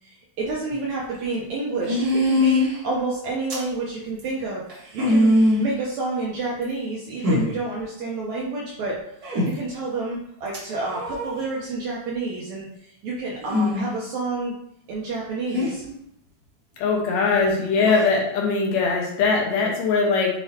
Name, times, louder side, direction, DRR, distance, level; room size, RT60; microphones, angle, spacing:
voice 1, 0.0-9.0 9.4-14.5 14.9-16.1, right 3 dB, 70° right, -4 dB, 1.8 m, -29 dB
sound 1, 0.7-0.8 1.9-2.8 3.5-3.7 4.2-4.3 4.7-5.7 6.6-6.7 7.2-7.5 9.2-9.5 10.5-11.3 13.4-13.9 15.5-15.7 17.8-18.1, left 1 dB, 50° right, 1.1 m, -21 dB
voice 2, 16.8-20.3, left 4 dB, 70° left, -2 dB, 2.6 m, -21 dB
7.6 x 4.7 x 2.8 m, 0.74 s
omnidirectional pair, 4.2 m